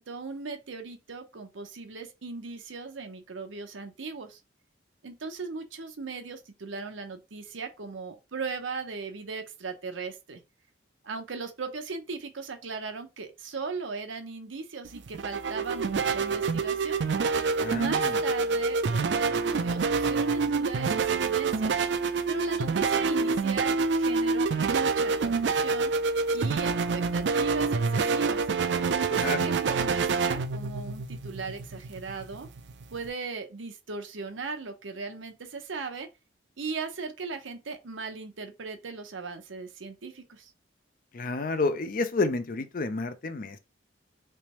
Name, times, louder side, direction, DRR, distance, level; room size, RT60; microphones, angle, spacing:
voice 1, 0.0-4.4 5.0-10.4 11.0-17.0 17.7-21.7 22.3-25.9 26.3-28.4 29.1-32.5 32.9-36.1 36.6-40.5, right 4 dB, 90° right, 0.8 m, -38 dB
sound 1, 14.8-33.1, right 4 dB, 70° right, 0.4 m, -27 dB
voice 2, 17.6-18.2 26.4-26.7 29.1-29.5 41.1-43.6, left 3 dB, 45° left, 0.5 m, -30 dB
3.3 x 3.0 x 2.9 m
head